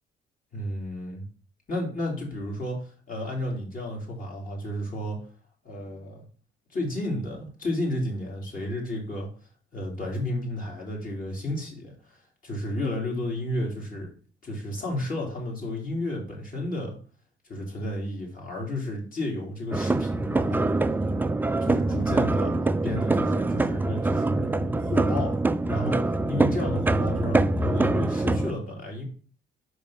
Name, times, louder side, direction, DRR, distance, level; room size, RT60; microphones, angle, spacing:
voice 1, 0.5-1.2 1.7-5.2 5.6-6.2 6.7-9.3 9.7-12.2 12.4-14.1 14.4-17.0 17.5-20.7 21.6-22.5 22.8-25.4 25.7-29.0, left 1 dB, 45° left, -1 dB, 3.4 m, -32 dB
sound 1, 19.7-28.5, right 2 dB, 10° right, 0.3 m, -24 dB
5.2 x 5.1 x 5.8 m, 0.40 s
cardioid pair, 90°, 20 cm